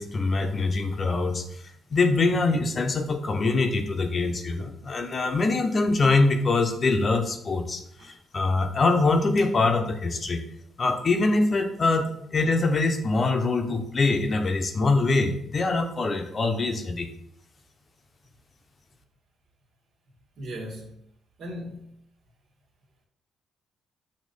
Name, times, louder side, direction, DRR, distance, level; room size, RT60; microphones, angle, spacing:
voice 1, 0.0-1.6 1.9-10.4 10.8-17.1, left 3 dB, 40° left, 0.8 m, -24 dB
voice 2, 20.4-20.9 21.4-21.9, equal, 70° right, 1.7 m, -37 dB
6.4 x 2.9 x 5.3 m
cardioid pair, 90°, 0 cm